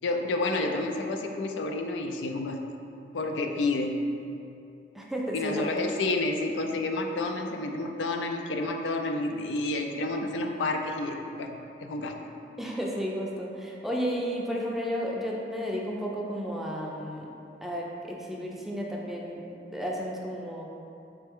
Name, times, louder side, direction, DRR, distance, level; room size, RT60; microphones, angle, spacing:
voice 1, 0.0-2.6 3.1-4.0 5.3-12.2, left 2 dB, 85° left, 3 dB, 0.4 m, -30 dB
voice 2, 4.9-5.7 12.6-17.3 17.6-19.5 19.7-20.6, equal, ahead, -3 dB, 0.4 m, -32 dB
4.4 x 3.2 x 3.5 m, 2.7 s
head